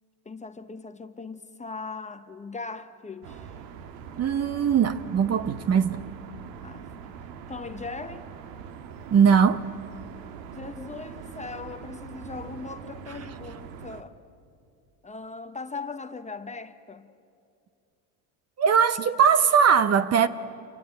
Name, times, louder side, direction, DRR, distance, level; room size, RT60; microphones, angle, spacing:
voice 1, 0.2-3.5 6.6-6.9 7.5-8.3 10.5-14.1 15.0-17.1, left 4 dB, 15° left, 0.8 m, -39 dB
sound 1, 3.2-14.0, right 7 dB, 85° right, 1.6 m, -42 dB
voice 2, 4.2-6.0 9.1-9.6 18.6-20.3, right 7 dB, 30° right, 0.9 m, -20 dB
28.0 x 23.5 x 8.9 m
supercardioid pair, 120°, 49 cm